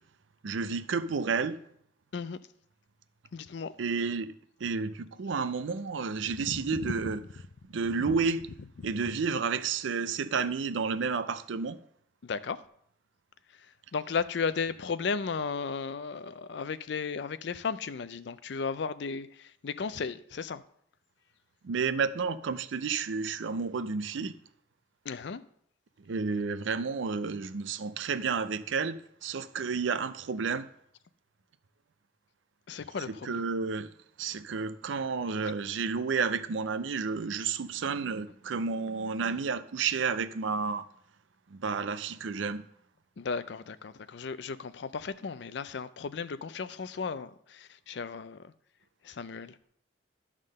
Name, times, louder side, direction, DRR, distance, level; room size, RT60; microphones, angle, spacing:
voice 1, 0.4-1.6 3.8-4.3 4.6-7.2 7.7-8.4 8.8-11.8 21.6-24.3 26.1-30.7 33.2-33.9 34.2-40.8 41.5-42.6, right 5 dB, 75° right, 0.5 m, -31 dB
voice 2, 3.3-3.7 6.4-7.1 8.0-8.2 8.8-8.9 12.2-12.6 13.9-20.6 25.1-25.4 32.7-33.4 43.2-48.5 49.0-49.6, left 5 dB, 60° left, 0.4 m, -35 dB
11.0 x 3.7 x 6.4 m
head